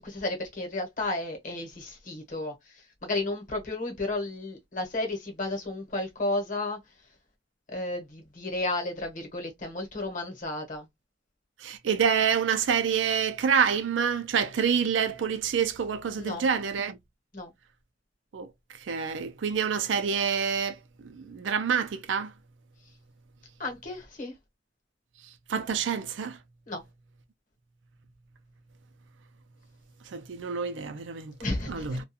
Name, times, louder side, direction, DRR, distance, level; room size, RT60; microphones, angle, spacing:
voice 1, 0.0-6.8 7.7-10.9 16.2-16.5 17.3-17.5 23.6-24.3 26.7-26.8 31.4-32.0, left 2 dB, 45° left, 0.9 m, -33 dB
voice 2, 11.6-17.0 18.3-18.5 18.9-20.8 21.0-22.3 25.5-26.4 30.1-31.3 31.7-32.1, right 7 dB, 80° right, 0.4 m, -27 dB
2.3 x 2.2 x 2.7 m
head